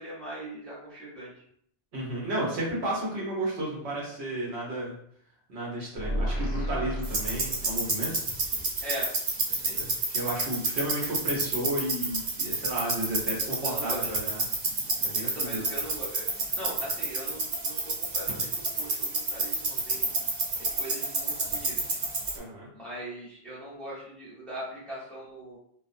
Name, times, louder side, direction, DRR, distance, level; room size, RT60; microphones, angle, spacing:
voice 1, 0.0-1.3 8.8-9.1 9.5-9.8 13.6-14.1 15.2-16.3 16.5-20.0 20.6-22.0 22.7-25.6, right 1 dB, ahead, -9 dB, 0.9 m, -40 dB
voice 2, 1.9-4.9 5.5-8.1 9.8-9.9 10.1-14.4 15.0-15.6 22.3-22.7, right 1 dB, 70° right, -5 dB, 1.1 m, -32 dB
sound 1, 6.0-8.1, equal, 30° left, 0.9 m, -32 dB
sound 2, 7.0-22.4, right 3 dB, 50° right, 0.6 m, -30 dB
2.4 x 2.3 x 2.5 m, 0.65 s
omnidirectional pair, 1.1 m